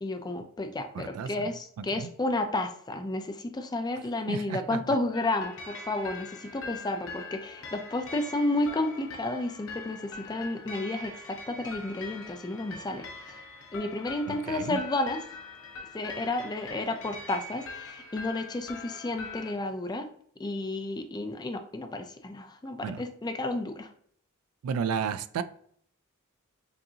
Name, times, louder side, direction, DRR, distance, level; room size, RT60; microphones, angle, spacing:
voice 1, 0.0-13.4 13.7-15.2 15.9-20.1 20.4-23.9, left 2 dB, 20° left, 6 dB, 0.4 m, -32 dB
voice 2, 0.9-1.5 1.8-2.1 4.3-4.8 14.3-14.8 22.8-23.0 24.6-25.4, right 6 dB, 80° right, 12 dB, 0.3 m, -33 dB
sound 1, 5.1-19.5, left 3 dB, 65° left, 0.8 m, -43 dB
5.3 x 2.5 x 2.7 m, 0.62 s
head